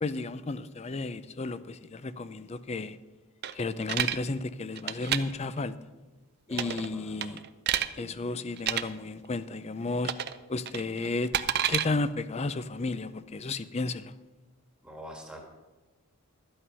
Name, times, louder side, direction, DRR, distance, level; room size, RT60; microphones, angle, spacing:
voice 1, 0.0-3.0 3.5-5.7 6.5-7.4 8.0-10.1 10.5-11.3 11.7-14.1, left 3 dB, 30° left, 0.4 m, -33 dB
sound 1, 3.4-4.2 4.8-5.2 6.5-6.9 7.2-7.9 8.6-8.8 10.0-10.4 10.7-11.9, right 10 dB, 45° right, 0.5 m, -29 dB
voice 2, 6.5-7.4 14.8-15.4, equal, 5° right, 1.6 m, -45 dB
12.5 x 8.7 x 5.5 m
head